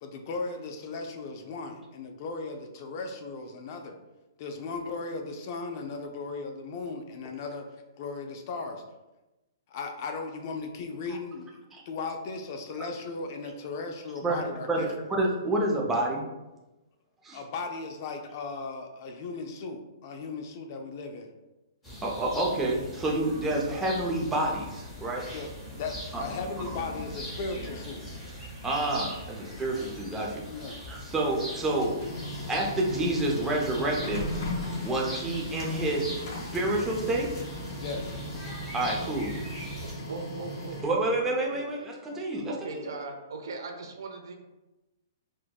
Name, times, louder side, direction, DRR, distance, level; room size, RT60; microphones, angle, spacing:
voice 1, 0.0-4.0 4.4-7.7 8.0-8.8 9.7-14.9 17.3-21.3 25.3-28.0 30.5-30.8 37.8-38.1, left 4 dB, 45° left, 5 dB, 0.4 m, -37 dB
voice 2, 14.2-16.2 17.2-17.4 22.0-25.2 26.1-26.2 28.6-30.4 30.9-31.9 32.5-34.2 34.8-37.3 38.7-39.3 40.8-42.8, right 2 dB, 10° right, -2 dB, 0.6 m, -28 dB
sound 1, 21.8-39.9, left 1 dB, 10° left, 1.3 m, -41 dB
Printer, 31.5-41.3, left 1 dB, 60° left, 1.3 m, -38 dB
voice 3, 40.1-41.6 42.5-44.4, right 3 dB, 80° right, 3 dB, 0.6 m, -39 dB
4.4 x 2.1 x 2.3 m, 1.0 s
hypercardioid pair, 145°, 2 cm